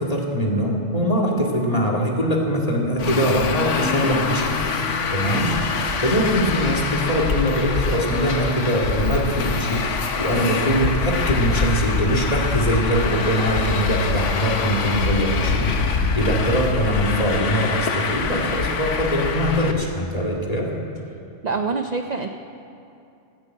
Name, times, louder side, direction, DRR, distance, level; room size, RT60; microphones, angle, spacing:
voice 1, 0.0-4.5 5.1-5.5 6.0-20.7, equal, 30° left, -2 dB, 2.3 m, -22 dB
Traffic noise roadway noise, 3.0-19.7, left 4 dB, 75° left, 1.3 m, -24 dB
voice 2, 21.4-22.3, right 4 dB, 45° right, 5 dB, 0.6 m, -25 dB
15.0 x 9.4 x 8.5 m, 2.6 s
omnidirectional pair, 1.3 m